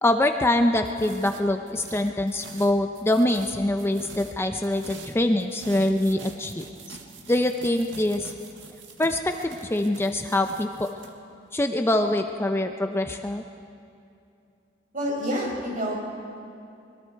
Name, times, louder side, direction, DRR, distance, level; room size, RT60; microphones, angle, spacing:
voice 1, 0.0-7.0 7.3-8.3 9.0-10.9 11.5-13.4, left 1 dB, 15° left, 5 dB, 0.6 m, -24 dB
sound 1, 0.8-4.4 4.6-11.1, right 4 dB, 85° right, 1.9 m, -45 dB
voice 2, 14.9-15.9, equal, 45° right, -2 dB, 5.7 m, -28 dB
25.5 x 22.0 x 4.7 m, 2.5 s
head